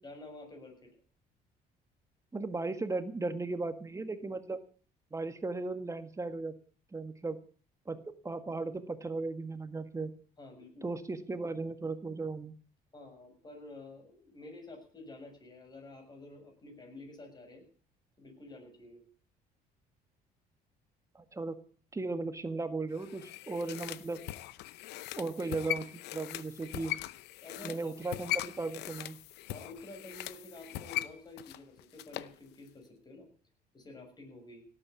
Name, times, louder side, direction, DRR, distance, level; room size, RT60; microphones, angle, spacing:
voice 1, 0.0-0.9 10.4-10.9 12.9-17.6 18.2-19.0 27.4-27.9 29.5-33.3 33.7-34.7, left 2 dB, 25° left, 4 dB, 7.0 m, -50 dB
voice 2, 2.3-4.6 5.1-6.5 6.9-7.4 7.8-10.1 10.8-12.5 21.3-21.6 21.9-24.2 25.2-26.9 27.6-29.2, right 3 dB, 20° right, 9 dB, 1.7 m, -36 dB
sound 1, 22.9-32.4 32.7-32.8, left 15 dB, 85° left, 0.8 m, -40 dB
17.5 x 9.0 x 8.2 m, 0.43 s
cardioid pair, 110°, 17 cm